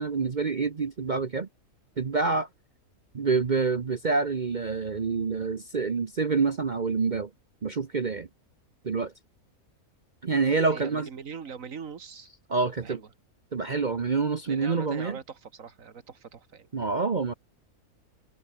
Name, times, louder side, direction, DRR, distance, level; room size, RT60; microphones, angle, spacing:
voice 1, 0.0-1.5 2.0-2.5 3.1-7.3 7.6-8.3 8.8-9.1 10.2-11.1 12.5-13.0 13.5-15.2 16.7-17.3, right 4 dB, 40° right, 0.9 m, -27 dB
voice 2, 10.7-12.3 12.8-13.1 14.5-16.7, right 6 dB, 65° right, 1.9 m, -42 dB
omnidirectional pair, 1.5 m